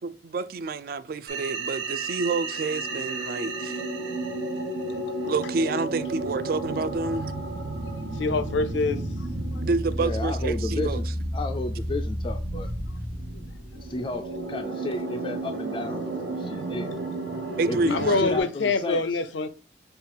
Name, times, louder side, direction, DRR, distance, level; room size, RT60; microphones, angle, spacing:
voice 1, 0.0-3.8 5.2-7.3 9.6-11.0 17.6-18.2, right 3 dB, 50° right, 0.3 m, -28 dB
sound 1, 1.3-18.4, right 1 dB, 85° right, 1.0 m, -32 dB
voice 2, 8.2-9.0 17.9-19.5, left 3 dB, 80° left, 0.5 m, -25 dB
voice 3, 10.0-11.1 11.3-12.7 13.7-16.9 17.7-19.2, left 2 dB, 25° left, 0.3 m, -33 dB
5.5 x 2.4 x 3.7 m
head